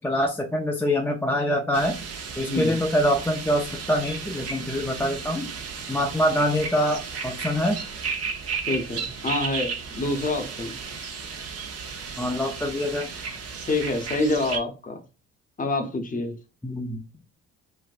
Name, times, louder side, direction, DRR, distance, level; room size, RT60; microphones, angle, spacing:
voice 1, 0.0-1.9 2.4-5.5 5.9-7.8 12.2-13.1 16.6-17.0, equal, 5° left, 0.4 m, -25 dB
sound 1, 1.7-14.6, right 5 dB, 55° right, 0.8 m, -34 dB
voice 2, 2.5-2.8 8.7-10.8 13.7-15.0 15.6-16.3, left 2 dB, 25° left, 0.8 m, -27 dB
4.1 x 2.1 x 2.5 m
cardioid pair, 90°, 30 cm